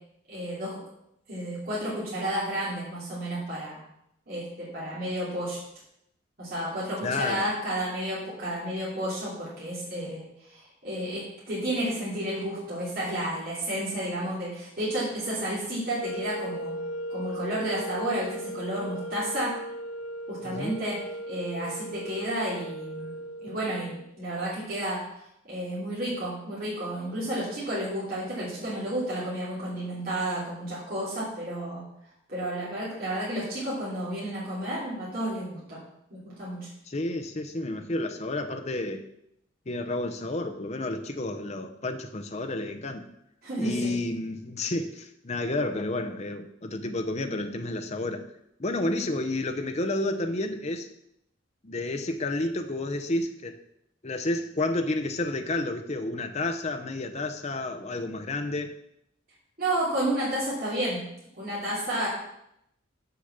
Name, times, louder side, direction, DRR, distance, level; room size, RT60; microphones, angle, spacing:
voice 1, 0.3-0.8 1.3-3.8 4.3-5.6 6.4-16.8 17.1-19.5 20.3-21.0 21.3-25.0 25.5-31.8 32.3-35.8 36.1-36.7 43.4-43.9 59.6-61.0 61.4-62.1, right 1 dB, 45° right, -9 dB, 3.1 m, -31 dB
voice 2, 7.0-7.5 20.4-20.8 36.9-39.0 39.7-43.1 43.6-48.3 48.6-50.9 51.6-53.6 54.0-58.7, left 2 dB, 30° left, 6 dB, 0.7 m, -30 dB
sound 1, 15.9-24.1, equal, 80° left, 0.6 m, -37 dB
6.7 x 5.8 x 6.6 m, 0.78 s
head